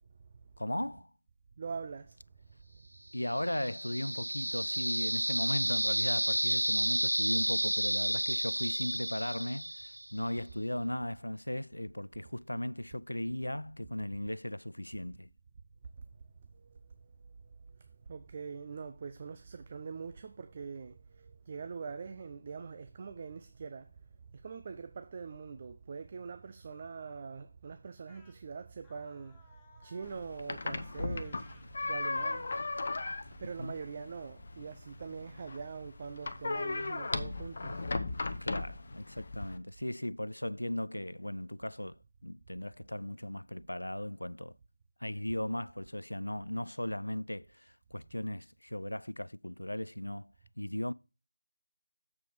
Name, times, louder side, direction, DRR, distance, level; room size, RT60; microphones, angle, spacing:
voice 1, 0.6-1.1 3.1-15.3 33.6-33.8 38.4-44.6 45.0-50.9, left 1 dB, 80° left, 0.3 m, -37 dB
voice 2, 1.6-2.2 16.5-16.8 17.4-23.9 24.3-32.5 33.4-37.9, right 5 dB, 30° right, 0.5 m, -43 dB
sound 1, 3.2-10.2, right 1 dB, 85° right, 0.5 m, -31 dB
sound 2, 28.1-28.4 28.8-30.3 30.6-31.7 32.2-32.5, left 3 dB, 5° left, 0.8 m, -62 dB
sound 3, 30.0-39.6, left 3 dB, 45° left, 0.7 m, -37 dB
7.7 x 4.7 x 5.1 m
figure-of-eight pair, 165°, 0 cm